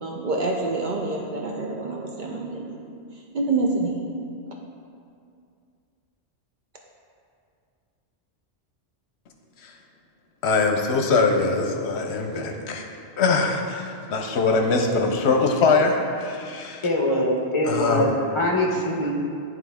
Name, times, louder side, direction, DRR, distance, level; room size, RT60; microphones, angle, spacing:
voice 1, 0.0-2.8 3.3-4.0, right 3 dB, 50° right, 0 dB, 0.7 m, -26 dB
voice 2, 10.4-12.9 13.2-16.9 17.6-18.2, left 4 dB, 75° left, 3 dB, 0.9 m, -22 dB
voice 3, 16.8-19.1, left 1 dB, 30° left, -1 dB, 0.8 m, -23 dB
10.5 x 3.6 x 3.5 m, 2.4 s
omnidirectional pair, 1.2 m